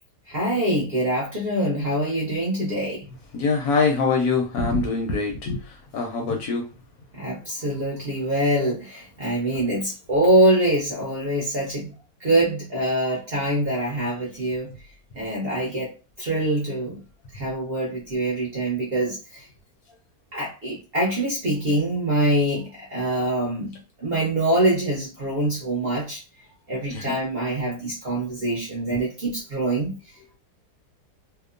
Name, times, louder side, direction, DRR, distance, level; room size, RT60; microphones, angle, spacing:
voice 1, 0.3-3.1 7.1-11.9 12.2-14.7 15.1-15.9 16.2-17.0 17.3-19.5 20.3-23.7 24.0-26.2 26.7-29.9, right 1 dB, 50° right, -3 dB, 0.7 m, -24 dB
voice 2, 3.3-6.7 17.3-17.4 26.9-27.1, left 4 dB, 70° left, 2 dB, 1.0 m, -24 dB
2.8 x 2.0 x 2.4 m, 0.31 s
omnidirectional pair, 1.8 m